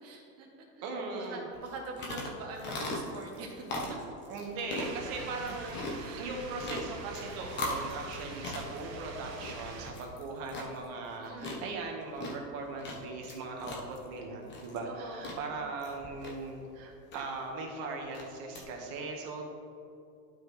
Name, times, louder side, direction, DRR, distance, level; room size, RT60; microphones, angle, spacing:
voice 1, 0.0-0.7 1.1-3.6 5.1-5.2 5.6-5.7 6.0-6.3 11.2-11.8 14.8-15.4, right 3 dB, 30° right, 0 dB, 1.4 m, -44 dB
voice 2, 0.8-1.4 4.3-19.4, right 3 dB, 45° right, 1 dB, 1.6 m, -39 dB
sound 1, 1.5-18.6, left 1 dB, 20° left, 1.1 m, -41 dB
sound 2, 4.8-9.9, right 3 dB, 85° right, 1.3 m, -45 dB
12.0 x 5.0 x 3.3 m, 2.7 s
supercardioid pair, 130°, 49 cm